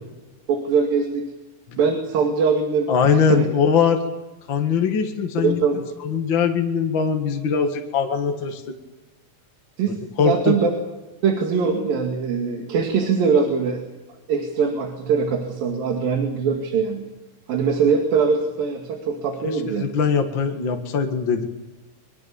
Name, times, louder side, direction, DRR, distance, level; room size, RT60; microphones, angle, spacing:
voice 1, 0.5-1.2 1.8-3.5 5.4-5.8 9.8-10.7 11.2-13.8 14.3-17.0 17.5-19.8, right 5 dB, 80° right, 2 dB, 4.1 m, -22 dB
voice 2, 2.9-4.0 4.5-5.6 6.0-8.6 10.2-10.6 19.4-21.5, left 6 dB, 40° left, 4 dB, 2.1 m, -21 dB
25.0 x 23.5 x 7.1 m, 1.1 s
omnidirectional pair, 4.0 m